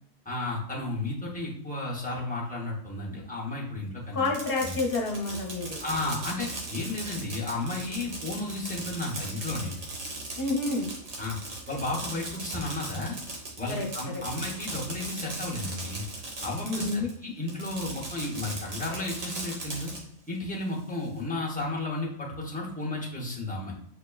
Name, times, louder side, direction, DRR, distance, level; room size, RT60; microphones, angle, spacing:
voice 1, 0.2-4.3 4.6-4.8 5.8-9.7 11.2-11.4 11.7-13.2 13.6-16.0 16.4-19.9 20.3-23.7, left 2 dB, 10° left, -5 dB, 0.5 m, -33 dB
voice 2, 4.1-5.8 10.4-10.9 13.7-13.9 16.6-17.1, left 3 dB, 50° left, -1 dB, 1.0 m, -29 dB
Fireworks, 4.2-17.1 17.5-20.0, right 2 dB, 75° right, 1.4 m, -38 dB
6.4 x 2.1 x 2.2 m, 0.72 s
omnidirectional pair, 1.4 m